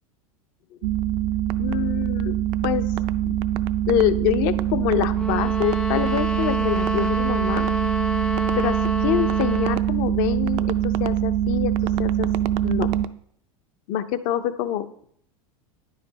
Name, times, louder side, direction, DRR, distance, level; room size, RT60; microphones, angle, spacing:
sound 1, 0.8-13.1, right 11 dB, 55° right, 0.5 m, -24 dB
voice 1, 1.6-2.4 2.6-2.9 3.2-3.4 3.9-7.7 8.6-12.3 12.6-12.9 13.9-15.0, left 11 dB, 55° left, 12 dB, 0.7 m, -26 dB
sound 2, 5.1-9.9, left 2 dB, 5° left, 0.4 m, -29 dB
9.5 x 5.1 x 4.0 m, 0.66 s
hypercardioid pair, 100°, 18 cm